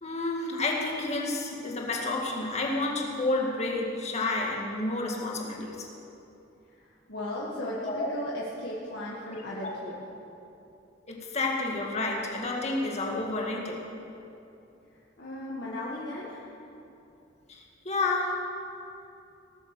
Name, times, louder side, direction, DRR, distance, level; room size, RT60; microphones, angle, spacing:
voice 1, 0.0-5.9 7.8-8.2 9.3-9.7 11.1-13.9 17.5-18.3, left 2 dB, 35° left, -1 dB, 1.8 m, -30 dB
voice 2, 7.1-7.8 8.1-10.0 15.2-16.4, left 1 dB, 60° left, -6 dB, 1.7 m, -36 dB
18.5 x 7.3 x 6.7 m, 2.8 s
head